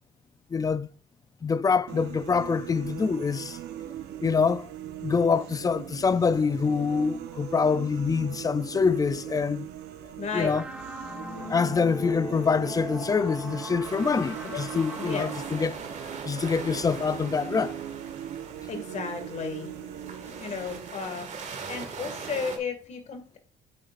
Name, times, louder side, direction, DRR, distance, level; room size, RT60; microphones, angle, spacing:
voice 1, 0.5-0.9 1.4-3.6 4.2-4.7 5.0-9.7 10.3-10.6 11.5-15.7 16.2-17.8, left 5 dB, 20° left, 0.4 m, -25 dB
sound 1, 1.9-20.9, right 10 dB, 80° right, 1.0 m, -40 dB
voice 2, 10.2-10.5 14.4-14.6 15.0-15.4 18.7-19.7 20.4-21.3 21.7-23.4, left 5 dB, 45° left, 2.1 m, -33 dB
sound 2, 10.3-17.2, equal, 5° right, 1.2 m, -40 dB
sound 3, 13.8-22.6, right 5 dB, 45° right, 1.9 m, -41 dB
9.1 x 7.6 x 2.5 m
cardioid pair, 110°, 17 cm